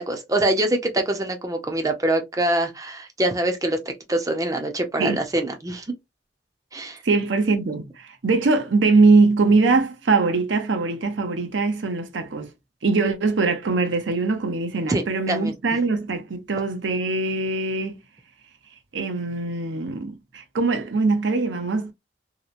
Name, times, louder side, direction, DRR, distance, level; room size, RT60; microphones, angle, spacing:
voice 1, 0.0-3.8 4.1-5.8 6.7-7.0 14.9-15.5, right 1 dB, 20° right, 0.5 m, -24 dB
voice 2, 7.0-12.5 12.8-18.0 18.9-21.9, right 3 dB, 80° right, 0.6 m, -22 dB
2.9 x 2.0 x 2.4 m
head